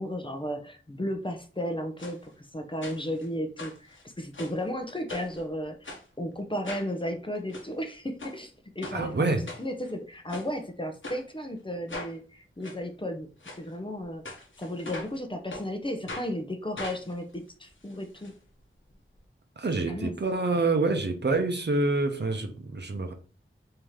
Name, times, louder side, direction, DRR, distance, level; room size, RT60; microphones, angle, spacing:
voice 1, 0.0-13.3 13.6-14.2 14.6-18.4 19.9-20.1, equal, 25° left, 5 dB, 0.6 m, -34 dB
sound 1, 2.0-2.2 2.8-3.3 3.6-4.6 5.1-5.4 5.8-6.0 6.6-6.9 7.4-7.7 8.2-8.4 8.8-9.0 9.5-9.9 10.3-10.5 11.0-11.2 11.9-12.1 12.6-12.8 13.4-13.6 14.3-15.2 15.5-15.7 16.1-16.3 16.8-18.3 18.6-18.7 18.9-19.0, left 2 dB, 65° left, 0.9 m, -40 dB
voice 2, 8.9-9.4 19.6-23.1, right 3 dB, 55° right, 5 dB, 0.7 m, -27 dB
3.6 x 2.8 x 3.1 m, 0.37 s
wide cardioid pair, 55°, 21 cm